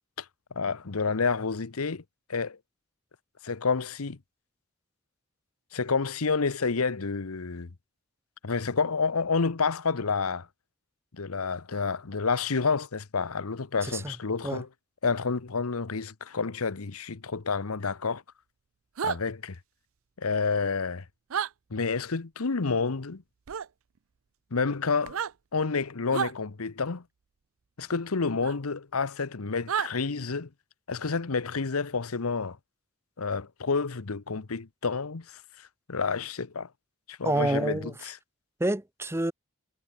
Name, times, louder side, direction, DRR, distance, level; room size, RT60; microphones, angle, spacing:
voice 1, 0.5-2.0 2.3-2.6 3.4-4.2 5.7-7.7 8.4-10.5 11.1-14.7 15.0-18.2 19.0-19.6 20.2-21.0 21.7-23.2 24.5-25.2 25.5-27.0 27.8-30.5 30.9-32.6 33.2-36.7 37.1-38.2, left 4 dB, 90° left, 1.0 m, -29 dB
voice 2, 13.8-14.1 14.4-14.6 37.2-37.9 38.6-39.3, right 1 dB, 10° right, 0.7 m, -28 dB
sound 1, 19.0-19.2 21.3-21.5 23.5-23.7 25.0-25.3 26.1-26.3 28.4-28.5 29.7-29.9, right 7 dB, 70° right, 0.5 m, -30 dB
head